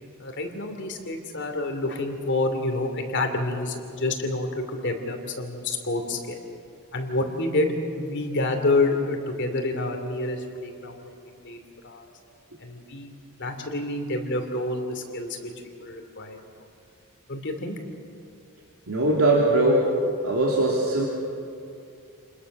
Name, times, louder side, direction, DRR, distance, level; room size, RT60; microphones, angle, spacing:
voice 1, 0.2-6.4 6.9-11.1 11.4-11.6 11.8-12.1 12.6-13.1 13.4-16.5 17.3-17.8, left 2 dB, 55° left, 4 dB, 2.8 m, -28 dB
voice 2, 18.9-19.8 20.2-21.0, right 2 dB, 70° right, -3 dB, 3.1 m, -20 dB
29.0 x 21.0 x 6.6 m, 2.5 s
head